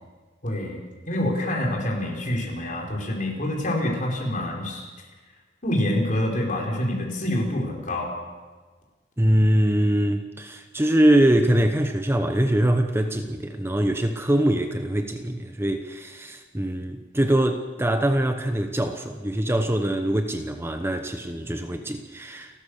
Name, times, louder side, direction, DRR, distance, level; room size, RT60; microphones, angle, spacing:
voice 1, 0.4-4.9 5.6-8.1, left 1 dB, 45° left, 0 dB, 5.0 m, -26 dB
voice 2, 9.2-22.6, right 1 dB, 15° right, 6 dB, 1.0 m, -23 dB
29.0 x 13.5 x 6.7 m, 1.4 s
head